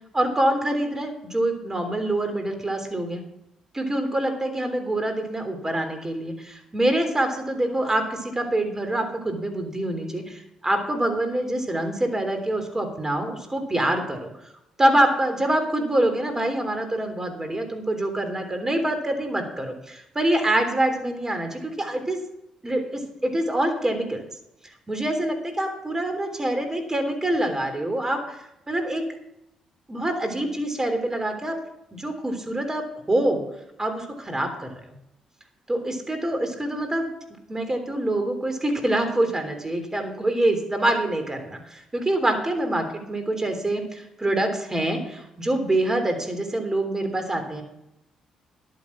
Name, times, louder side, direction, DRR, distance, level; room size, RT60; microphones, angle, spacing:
voice 1, 0.1-3.2 3.7-14.3 14.8-22.2 22.6-24.2 24.9-29.0 29.9-31.6 31.9-33.4 33.8-34.8 35.7-37.1 37.5-47.6, right 1 dB, 25° right, 6 dB, 3.4 m, -25 dB
11.0 x 9.1 x 6.1 m, 0.83 s
hypercardioid pair, 45°, 2 cm